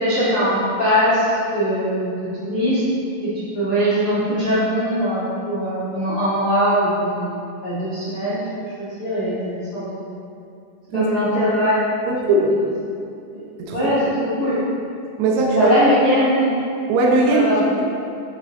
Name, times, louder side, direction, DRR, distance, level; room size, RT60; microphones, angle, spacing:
voice 1, 0.0-2.8 3.2-8.4 8.8-10.1 10.9-11.9 12.2-12.4 13.3-14.6 15.5-16.6 17.3-17.8, equal, 45° left, -12 dB, 1.3 m, -21 dB
voice 2, 12.1-12.5 13.6-13.9 15.2-15.7 16.9-17.5, right 2 dB, 85° right, -2 dB, 3.3 m, -19 dB
9.8 x 6.6 x 3.3 m, 2.5 s
omnidirectional pair, 5.2 m